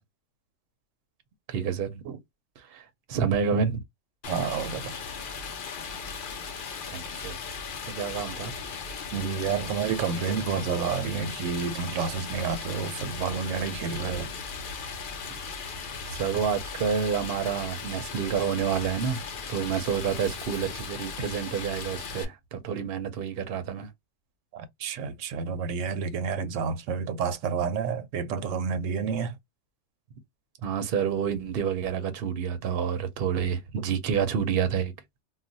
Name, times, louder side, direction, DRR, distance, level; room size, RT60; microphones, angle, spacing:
voice 1, 1.5-2.0 2.7-2.8 3.1-3.8 6.9-7.4 7.9-8.5 15.6-23.9 30.6-34.9, right 7 dB, 60° right, 0.7 m, -29 dB
Stream, 4.2-22.2, left 5 dB, 55° left, 0.6 m, -37 dB
voice 2, 4.3-4.9 9.1-14.3 24.5-29.3, right 6 dB, 85° right, 0.9 m, -30 dB
2.4 x 2.2 x 3.9 m
omnidirectional pair, 1.3 m